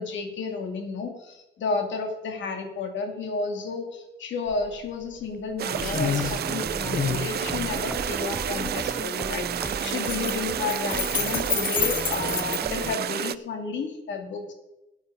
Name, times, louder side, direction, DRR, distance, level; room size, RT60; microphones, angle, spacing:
voice 1, 0.0-14.5, left 4 dB, 70° left, 4 dB, 2.5 m, -32 dB
sound 1, 4.5-4.6 5.0-5.5 5.8-6.4 6.9-8.8 9.6-12.6, left 7 dB, 45° left, 1.1 m, -29 dB
sound 2, 5.6-13.3, right 11 dB, 55° right, 0.5 m, -30 dB
sound 3, 5.7-13.0, right 1 dB, 5° right, 0.6 m, -36 dB
13.5 x 8.7 x 4.9 m, 0.97 s
cardioid pair, 90°, 20 cm